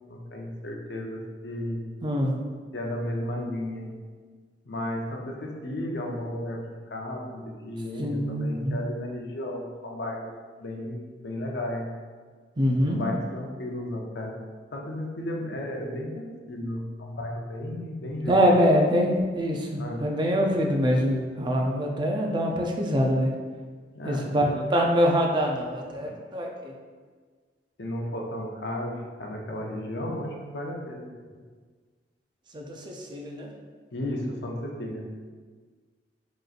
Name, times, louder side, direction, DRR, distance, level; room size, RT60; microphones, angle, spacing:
voice 1, 0.1-1.9 2.7-3.9 4.7-6.6 6.9-11.9 12.9-14.4 14.7-18.6 19.8-20.1 23.9-24.6 26.0-26.1 27.8-31.1 33.9-35.1, left 1 dB, 70° left, 0 dB, 0.6 m, -34 dB
voice 2, 2.0-2.3 8.0-8.8 12.6-13.0 18.3-23.3 24.0-26.7 32.5-33.5, equal, 25° right, 0 dB, 0.5 m, -24 dB
5.0 x 3.0 x 2.5 m, 1.5 s
head